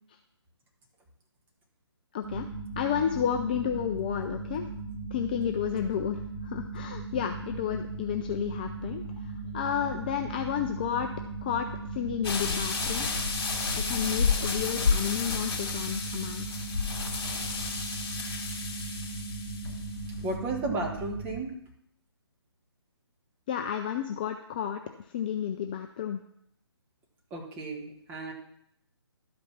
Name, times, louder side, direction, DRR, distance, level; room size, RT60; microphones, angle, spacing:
voice 1, 2.1-2.5 2.8-4.6 5.1-11.1 11.4-13.1 13.8-16.5 23.5-24.8 25.1-26.2, left 9 dB, 20° left, 5 dB, 0.4 m, -31 dB
sound 1, 2.2-21.4, right 3 dB, 45° right, 2.7 m, -38 dB
Waves Effect, 12.2-20.2, left 5 dB, 55° left, 2.7 m, -31 dB
voice 2, 20.2-21.6 27.3-28.3, right 2 dB, 15° right, 0 dB, 1.3 m, -33 dB
12.0 x 5.2 x 5.8 m, 0.70 s
figure-of-eight pair, 150°, 14 cm